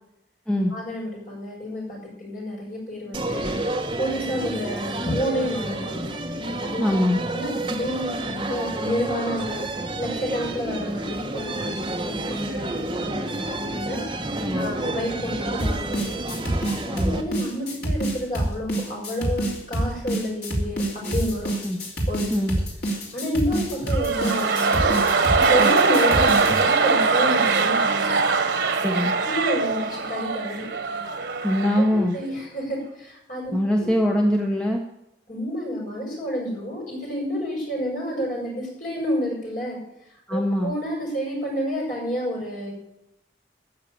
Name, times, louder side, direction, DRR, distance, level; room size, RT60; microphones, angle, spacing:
voice 1, 0.7-3.6 4.0-6.1 6.6-6.9 7.3-14.0 14.5-16.2 17.0-21.5 22.1-22.3 23.1-28.2 28.9-30.6 31.8-33.9 35.3-39.8 40.3-42.7, equal, 45° left, -3 dB, 6.2 m, -29 dB
sound 1, 3.1-17.2, right 2 dB, 25° right, 1.2 m, -30 dB
voice 2, 6.8-7.2 14.4-14.7 16.9-17.2 21.6-21.8 22.3-22.6 28.8-29.1 31.4-32.1 33.5-34.8 40.3-40.7, left 1 dB, 5° left, 0 dB, 1.2 m, -22 dB
sound 2, 15.6-26.6, right 1 dB, 65° left, 3.5 m, -27 dB
sound 3, 23.9-32.0 32.2-32.3, right 4 dB, 90° right, 1.1 m, -22 dB
14.5 x 6.7 x 8.8 m, 0.85 s
head